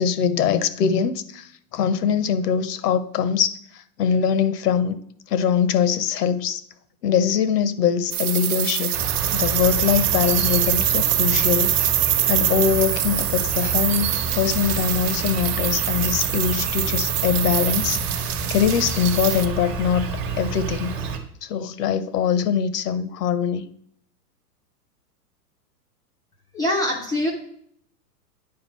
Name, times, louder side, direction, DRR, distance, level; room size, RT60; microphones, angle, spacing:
voice 1, 0.0-5.0 5.3-6.6 7.0-9.0 9.3-11.9 12.3-20.0 20.4-20.9 21.4-23.6, left 7 dB, 75° left, 0.8 m, -22 dB
sound 1, 8.1-19.5, right 11 dB, 65° right, 0.9 m, -24 dB
Insect, 8.9-21.2, right 4 dB, 25° right, 0.9 m, -29 dB
voice 2, 26.5-27.3, left 1 dB, 10° left, 0.4 m, -23 dB
9.4 x 4.8 x 3.1 m
hypercardioid pair, 135°, 48 cm